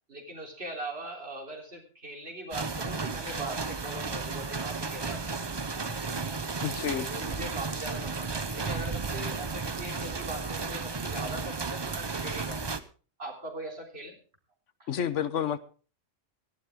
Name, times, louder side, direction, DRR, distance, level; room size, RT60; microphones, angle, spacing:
voice 1, 0.1-6.2 6.9-12.8 13.2-14.2 14.8-14.9, right 1 dB, 55° right, 1 dB, 3.7 m, -41 dB
sound 1, 2.5-12.8, right 4 dB, 25° right, 0.6 m, -33 dB
voice 2, 6.6-7.1 14.9-15.6, left 9 dB, 75° left, 14 dB, 1.2 m, -29 dB
18.0 x 13.0 x 3.6 m, 0.38 s
omnidirectional pair, 1.3 m